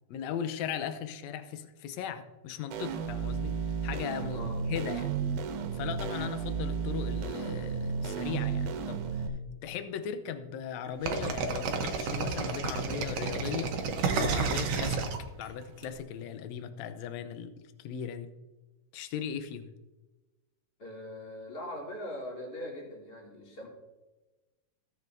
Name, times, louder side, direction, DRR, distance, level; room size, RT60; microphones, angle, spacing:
voice 1, 0.1-3.6 3.8-5.1 5.7-9.0 9.6-13.7 14.2-15.0 15.4-17.5 17.8-18.3 18.9-19.7, left 8 dB, 75° left, 9 dB, 1.8 m, -37 dB
sound 1, 2.7-9.3, right 6 dB, 80° right, 2.3 m, -33 dB
sound 2, 11.1-15.8, right 5 dB, 65° right, 1.7 m, -31 dB
voice 2, 20.8-23.7, left 1 dB, 30° left, -3 dB, 2.8 m, -41 dB
16.5 x 7.5 x 2.6 m, 1.1 s
omnidirectional pair, 3.6 m